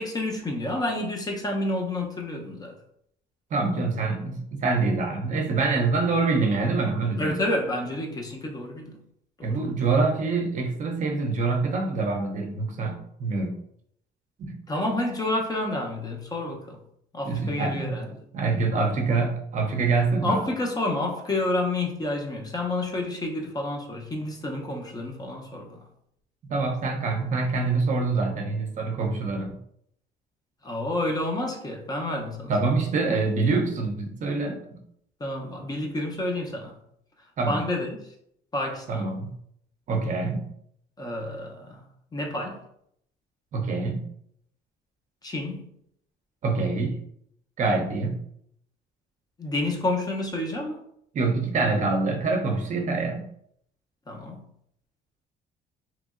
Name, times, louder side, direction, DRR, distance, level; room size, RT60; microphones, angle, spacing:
voice 1, 0.0-2.7 7.2-8.9 9.4-9.6 14.7-16.8 17.1-18.2 20.2-25.8 30.6-32.5 35.2-36.7 37.5-38.0 38.5-39.1 41.0-41.8 42.1-42.6 45.2-45.7 49.4-50.8 54.1-54.4, left 1 dB, 25° left, 0.6 m, -29 dB
voice 2, 3.5-7.4 9.4-13.6 14.4-14.6 17.2-18.0 18.3-20.4 26.5-29.6 32.5-34.8 37.4-37.6 38.9-39.3 39.9-40.5 43.5-44.1 46.4-47.0 47.6-48.2 51.1-53.3, right 3 dB, 50° right, 0.5 m, -25 dB
2.9 x 2.6 x 2.4 m
cardioid pair, 110°, 17 cm